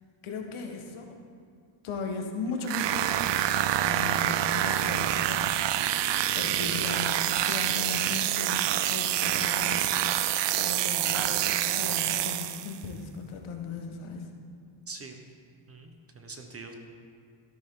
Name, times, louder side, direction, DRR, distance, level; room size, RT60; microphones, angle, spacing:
voice 1, 0.2-1.1 1.8-9.9 10.6-14.3, left 4 dB, 75° left, 2 dB, 1.6 m, -37 dB
sound 1, 2.6-12.8, right 12 dB, 60° right, 0.5 m, -27 dB
voice 2, 14.9-15.2 15.7-16.7, right 4 dB, 30° right, 4 dB, 1.1 m, -43 dB
13.5 x 12.5 x 3.9 m, 2.1 s
cardioid pair, 140°, 49 cm